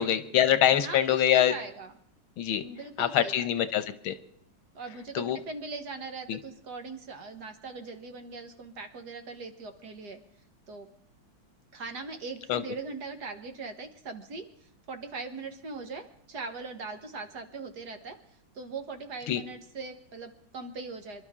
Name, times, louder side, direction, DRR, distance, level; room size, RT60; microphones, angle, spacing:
voice 1, 0.0-1.5 2.4-2.6 3.0-4.1 5.2-5.4 6.3-6.4 12.5-12.6 19.3-19.4, left 10 dB, 85° left, 11 dB, 1.8 m, -24 dB
voice 2, 0.8-1.9 2.6-3.3 3.6-3.7 4.8-10.2 10.7-10.9 11.7-14.5 14.9-18.2 18.6-21.2, right 3 dB, 55° right, 7 dB, 1.7 m, -40 dB
26.0 x 12.0 x 3.7 m, 0.68 s
omnidirectional pair, 2.2 m